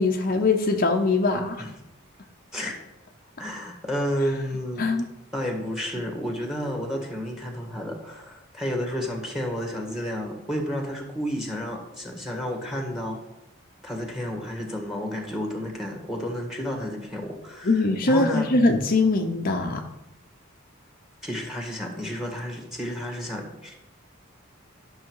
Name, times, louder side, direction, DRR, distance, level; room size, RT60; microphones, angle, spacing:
voice 1, 0.0-1.6 4.8-5.1 17.6-19.8, left 3 dB, 45° left, 3 dB, 0.8 m, -22 dB
voice 2, 1.4-1.7 2.5-2.7 3.4-4.9 5.3-13.2 13.8-18.7 21.2-23.7, equal, ahead, 2 dB, 1.8 m, -31 dB
11.5 x 6.4 x 4.7 m, 0.92 s
head